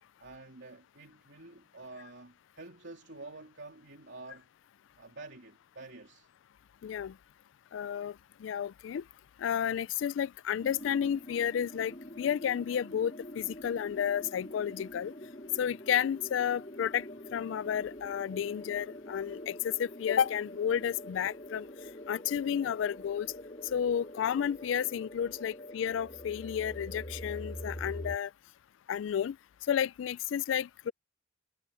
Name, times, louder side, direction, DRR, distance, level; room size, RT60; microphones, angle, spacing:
voice 1, 0.2-4.5 5.0-6.3, right 2 dB, 70° right, 3.2 m, -49 dB
voice 2, 6.8-7.2 7.7-9.0 9.4-15.1 15.6-17.1 17.3-21.7 22.1-23.3 23.7-28.3 28.9-29.4 29.7-30.9, left 8 dB, 80° left, 0.3 m, -32 dB
sound 1, 10.6-28.2, left 1 dB, 35° left, 5.8 m, -45 dB
head